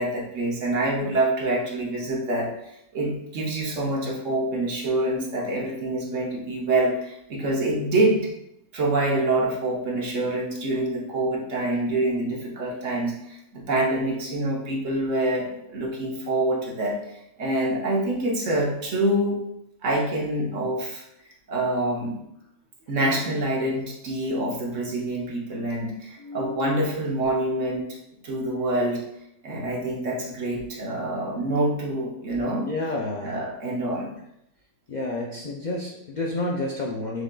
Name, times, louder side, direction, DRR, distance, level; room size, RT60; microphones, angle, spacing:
voice 1, 0.0-2.5 2.9-8.3 8.7-19.4 19.8-21.0 21.5-22.2 22.9-27.9 28.2-29.0 29.4-32.7 33.2-34.1, right 1 dB, 65° right, -2 dB, 1.3 m, -26 dB
voice 2, 26.2-26.8 32.6-33.5 34.9-37.2, left 2 dB, 65° left, -2 dB, 0.4 m, -30 dB
6.3 x 3.7 x 2.2 m, 0.81 s
omnidirectional pair, 1.5 m